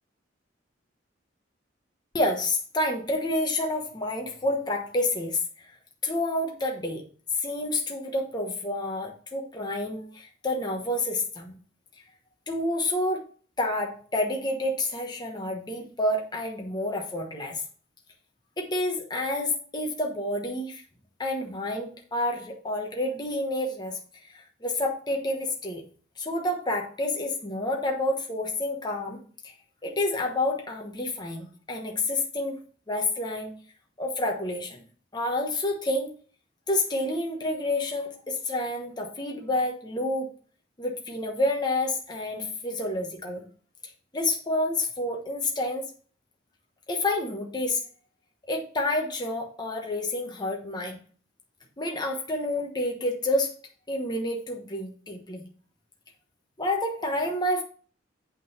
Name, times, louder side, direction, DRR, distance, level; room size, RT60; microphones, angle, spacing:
voice 1, 2.1-5.8 6.0-7.0 7.3-11.5 12.5-13.2 13.6-17.6 18.6-20.8 21.2-25.8 26.2-29.5 29.8-32.6 32.9-33.5 34.0-34.8 35.1-36.1 36.7-40.3 40.8-43.4 44.1-45.9 46.9-47.8 48.5-51.0 51.8-53.5 53.9-55.5 56.6-57.6, left 1 dB, 25° left, 1 dB, 1.1 m, -29 dB
8.2 x 3.9 x 5.6 m, 0.42 s
head